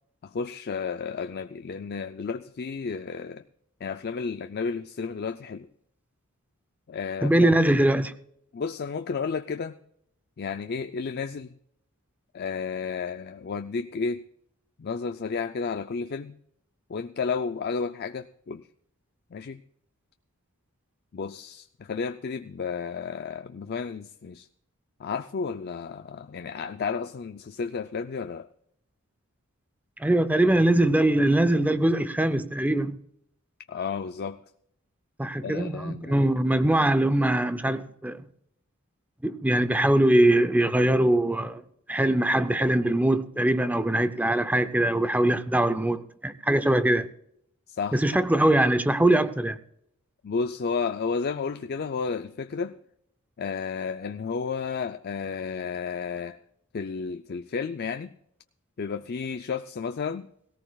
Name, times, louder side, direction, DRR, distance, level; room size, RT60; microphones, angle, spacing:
voice 1, 0.2-3.4 3.8-5.7 6.9-7.3 8.5-9.8 10.4-11.5 12.3-14.3 14.8-16.3 16.9-18.7 19.3-19.6 21.1-24.5 25.0-28.5 33.7-34.4 35.4-36.3 47.7-48.0 50.2-52.8 53.4-56.4 56.7-58.1 58.8-60.3, left 5 dB, 45° left, 0.4 m, -32 dB
voice 2, 7.2-8.1 30.0-33.0 35.2-38.3 39.2-41.6 41.9-47.1 47.9-49.6, right 1 dB, 5° right, 0.5 m, -22 dB
18.0 x 17.5 x 2.3 m
head